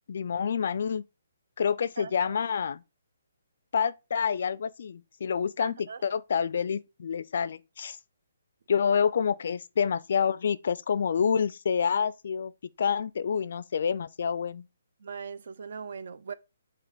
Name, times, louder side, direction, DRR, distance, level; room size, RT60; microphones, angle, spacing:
voice 1, 0.1-1.0 1.6-2.8 3.7-8.0 8.7-12.5 12.8-14.6, left 7 dB, 50° left, 0.3 m, -28 dB
voice 2, 2.0-2.4 5.6-6.0 15.0-16.3, right 6 dB, 55° right, 0.5 m, -40 dB
7.0 x 2.9 x 5.0 m
hypercardioid pair, 175°, 0 cm